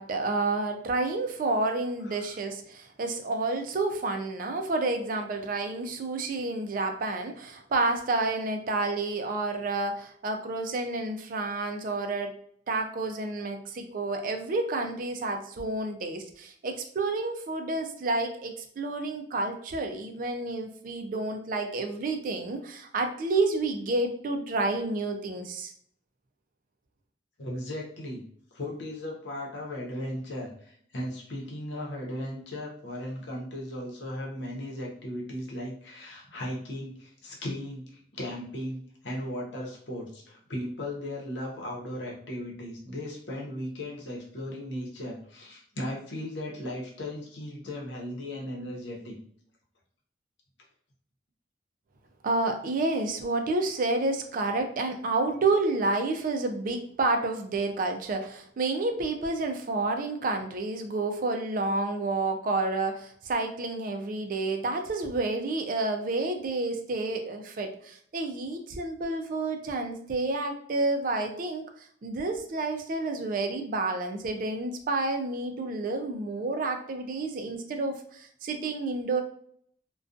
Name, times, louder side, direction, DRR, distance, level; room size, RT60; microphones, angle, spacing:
voice 1, 0.0-12.3 12.7-25.7 52.2-71.6 72.0-79.2, right 2 dB, 50° right, 5 dB, 0.4 m, -29 dB
voice 2, 27.4-28.2 28.5-49.2, left 1 dB, 85° left, -2 dB, 0.8 m, -37 dB
2.4 x 2.2 x 2.5 m, 0.64 s
head